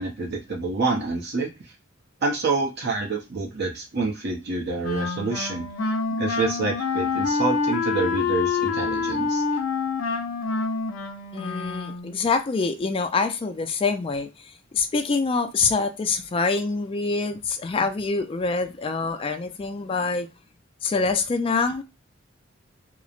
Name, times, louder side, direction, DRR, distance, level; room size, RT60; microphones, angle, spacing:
voice 1, 0.0-1.5 2.2-5.7 6.2-9.4, right 3 dB, 55° right, 0.6 m, -27 dB
Wind instrument woodwind instrument, 4.8-12.2, left 4 dB, 80° left, 0.5 m, -27 dB
voice 2, 11.3-14.3 14.7-20.3 20.8-21.8, left 4 dB, 25° left, 0.3 m, -25 dB
2.9 x 2.0 x 2.4 m
head